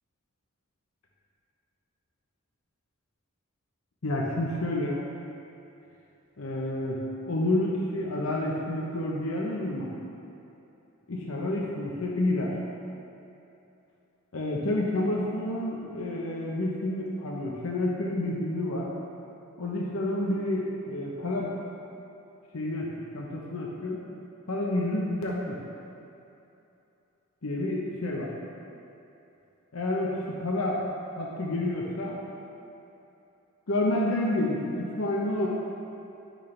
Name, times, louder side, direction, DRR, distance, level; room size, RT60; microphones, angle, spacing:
voice 1, 4.0-5.0 6.4-9.9 11.1-12.5 14.3-18.9 19.6-21.6 22.5-24.0 24.5-25.6 27.4-28.3 29.7-30.8 31.2-32.2 33.7-35.5, left 1 dB, 80° left, -3 dB, 0.9 m, -29 dB
10.5 x 6.4 x 3.3 m, 2.8 s
head